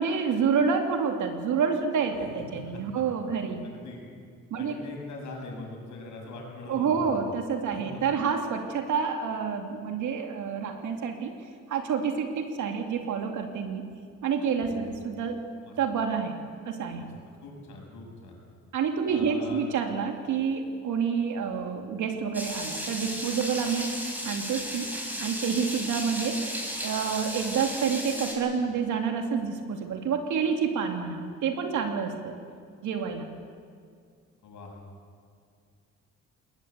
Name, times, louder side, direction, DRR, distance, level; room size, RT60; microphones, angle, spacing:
voice 1, 0.0-3.6 4.5-4.8 6.7-11.3 11.7-13.8 14.2-15.4 15.8-16.3 16.7-17.1 18.7-24.0 24.2-26.4 26.8-32.3 32.8-33.3, right 6 dB, 75° right, 4 dB, 2.6 m, -28 dB
voice 2, 2.5-3.0 3.3-4.0 4.6-7.1 7.7-8.0 14.7-15.0 15.6-15.8 17.0-17.1 17.4-18.4 19.0-19.6 34.4-34.7, left 2 dB, 75° left, 0 dB, 7.1 m, -42 dB
sound 1, 22.3-28.3, equal, 5° right, 5.8 m, -35 dB
20.5 x 19.5 x 8.2 m, 2.3 s
cardioid pair, 90°, 30 cm